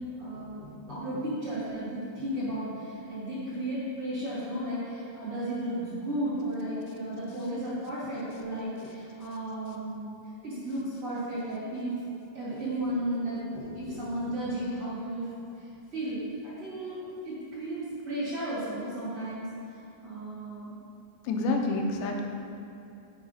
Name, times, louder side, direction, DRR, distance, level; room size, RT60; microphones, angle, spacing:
voice 1, 0.2-0.6 0.9-10.2 10.4-11.9 12.3-13.4 13.7-15.3 15.6-17.0 17.2-20.7, right 1 dB, 45° right, -10 dB, 2.3 m, -34 dB
voice 2, 21.3-22.2, left 2 dB, 90° left, 2 dB, 3.0 m, -29 dB
7.9 x 4.9 x 5.5 m, 2.8 s
omnidirectional pair, 4.9 m